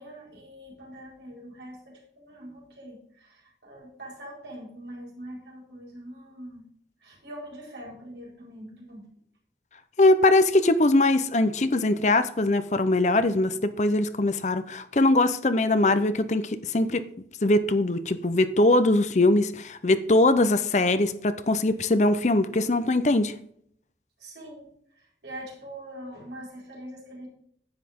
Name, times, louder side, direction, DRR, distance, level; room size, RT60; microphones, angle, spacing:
voice 1, 0.0-6.7 7.0-9.0 24.2-24.7 25.0-27.3, right 1 dB, 75° right, 4.5 m, -43 dB
voice 2, 10.0-17.0 17.4-23.3, left 2 dB, 40° left, 0.6 m, -22 dB
10.5 x 8.4 x 3.6 m
head